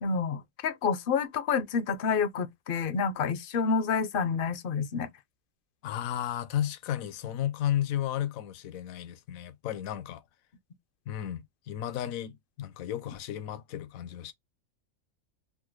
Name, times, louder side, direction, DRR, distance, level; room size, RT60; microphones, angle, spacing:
voice 1, 0.0-5.1, left 5 dB, 60° left, 0.5 m, -28 dB
voice 2, 5.8-10.2 11.1-14.3, left 11 dB, 85° left, 1.0 m, -33 dB
3.6 x 2.0 x 3.0 m
omnidirectional pair, 1.4 m